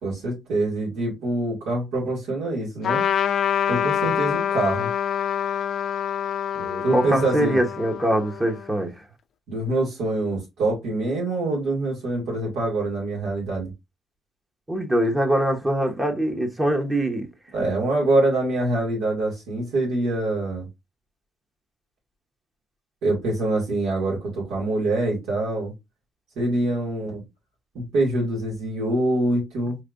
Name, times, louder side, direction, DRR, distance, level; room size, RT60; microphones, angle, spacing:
voice 1, 0.0-3.0 3.7-4.9 6.8-7.6 9.5-13.7 17.5-20.7 23.0-25.7 26.4-27.2 27.7-29.8, right 2 dB, 85° right, 2.3 m, -25 dB
Trumpet, 2.8-8.7, left 9 dB, 65° left, 0.4 m, -26 dB
voice 2, 6.6-8.9 14.7-17.3, right 1 dB, 20° right, 1.0 m, -23 dB
4.6 x 3.2 x 2.5 m
cardioid pair, 90°, 0 cm